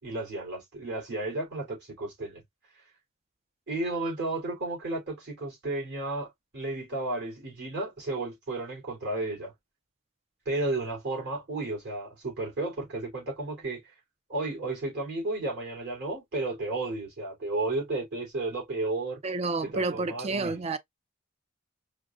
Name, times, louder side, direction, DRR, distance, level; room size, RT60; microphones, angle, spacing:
voice 1, 0.0-2.4 3.7-9.5 10.4-13.9 14.3-19.2 19.6-20.6, right 2 dB, 55° right, 3.4 m, -33 dB
voice 2, 19.2-20.8, right 3 dB, 30° right, 0.4 m, -30 dB
4.9 x 2.6 x 2.5 m
head